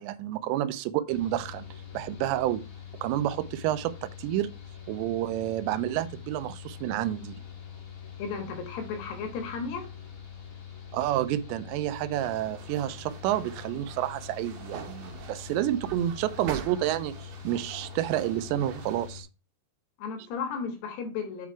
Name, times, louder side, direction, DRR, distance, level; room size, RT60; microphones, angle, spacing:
voice 1, 0.0-1.7 1.9-2.6 3.0-4.5 4.9-7.4 10.9-19.3, right 13 dB, 85° right, 2.9 m, -29 dB
Mechanical fan, 1.1-19.2, left 8 dB, 35° left, 1.3 m, -44 dB
voice 2, 8.2-9.9 20.0-21.5, left 5 dB, 70° left, 3.3 m, -34 dB
sound 1, 12.1-19.1, right 8 dB, 70° right, 2.6 m, -45 dB
8.3 x 4.6 x 4.6 m
omnidirectional pair, 5.1 m